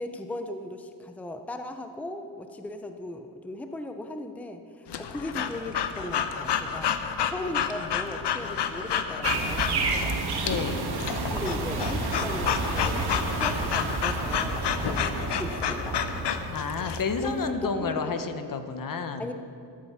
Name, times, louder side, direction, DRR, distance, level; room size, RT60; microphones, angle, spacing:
voice 1, 0.0-9.8 11.3-16.0 16.8-18.1 19.2-19.3, left 1 dB, 5° left, 6 dB, 0.6 m, -37 dB
Breathing / Dog, 4.9-17.0, left 8 dB, 80° left, 0.9 m, -30 dB
sound 1, 9.2-17.5, right 3 dB, 70° right, 1.8 m, -31 dB
voice 2, 10.4-10.9 16.5-19.3, left 5 dB, 55° left, 8 dB, 1.1 m, -31 dB
14.5 x 13.0 x 5.8 m, 2.5 s
wide cardioid pair, 135°, 40 cm